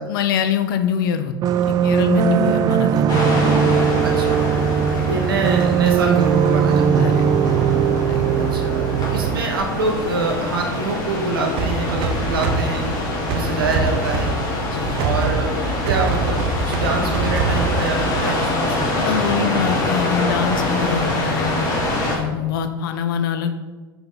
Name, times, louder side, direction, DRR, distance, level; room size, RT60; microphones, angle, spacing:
voice 1, 0.1-3.3 4.9-5.1 7.0-7.6 8.1-8.2 14.7-15.0 18.2-18.5 18.8-21.7 22.1-23.5, left 8 dB, 65° left, 8 dB, 0.7 m, -24 dB
sound 1, 1.4-9.4, right 8 dB, 35° right, 0.3 m, -19 dB
sound 2, 3.1-22.2, left 1 dB, 30° left, 2.4 m, -25 dB
voice 2, 4.0-4.5 5.0-7.2 8.4-8.9 9.1-12.9 13.3-14.4 14.9-15.6 15.8-19.1, right 3 dB, 80° right, 1 dB, 1.4 m, -25 dB
sound 3, 11.6-18.3, right 3 dB, 55° right, 0.9 m, -25 dB
5.2 x 4.9 x 5.6 m, 1.3 s
hypercardioid pair, 85°, 12 cm